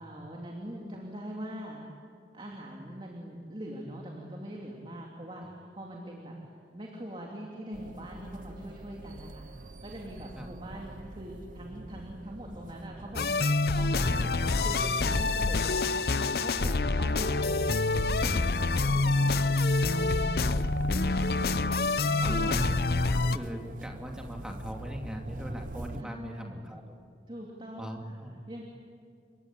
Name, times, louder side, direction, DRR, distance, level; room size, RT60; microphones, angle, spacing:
voice 1, 0.0-1.9 2.3-6.4 6.7-9.4 9.8-13.2 13.8-19.4 20.0-20.5 22.2-22.6 26.0-26.6 27.3-28.2 28.5-28.6, equal, 30° right, -1 dB, 3.0 m, -42 dB
sound 1, 7.7-26.0, right 2 dB, 45° right, 0.7 m, -44 dB
sound 2, 13.1-23.4, left 3 dB, 60° left, 0.7 m, -26 dB
voice 2, 20.9-21.7 22.2-22.9 23.2-26.8 27.8-28.3, equal, 5° right, 1 dB, 2.4 m, -40 dB
29.0 x 23.0 x 8.8 m, 2.2 s
head